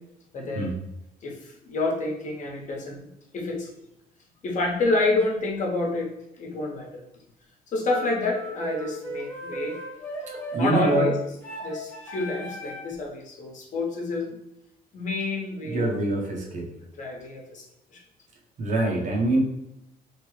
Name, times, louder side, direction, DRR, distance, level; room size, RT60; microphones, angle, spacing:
voice 1, 0.3-0.7 1.2-3.1 3.3-3.7 4.4-7.0 7.7-9.8 10.6-11.2 11.6-14.3 14.9-16.0 17.0-17.6 17.9-18.0, left 2 dB, 45° left, 0 dB, 0.9 m, -28 dB
sound 1, 7.8-13.0, left 2 dB, 15° left, 1.1 m, -35 dB
voice 2, 10.5-11.1 15.6-16.7 18.6-19.4, right 2 dB, 45° right, 0 dB, 0.8 m, -24 dB
3.1 x 2.1 x 3.1 m, 0.82 s
cardioid pair, 110°, 17 cm